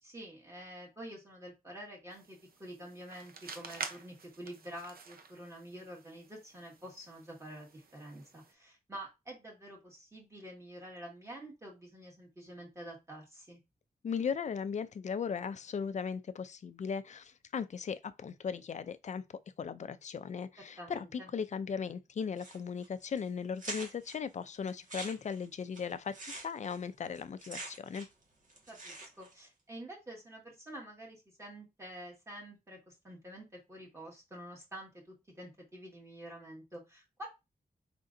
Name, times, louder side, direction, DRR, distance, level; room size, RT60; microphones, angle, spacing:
voice 1, 0.0-13.6 20.6-21.3 28.7-37.3, right 1 dB, 20° right, 2.0 m, -48 dB
sound 1, 2.1-8.5, right 5 dB, 85° right, 0.7 m, -48 dB
voice 2, 14.0-19.2 19.6-28.1, left 6 dB, 50° left, 0.4 m, -37 dB
sound 2, 22.4-22.9 23.2-23.3 23.6-24.2 24.7-28.2 28.5-29.3, right 2 dB, 60° right, 1.6 m, -45 dB
5.1 x 3.7 x 2.6 m
wide cardioid pair, 165°, 15 cm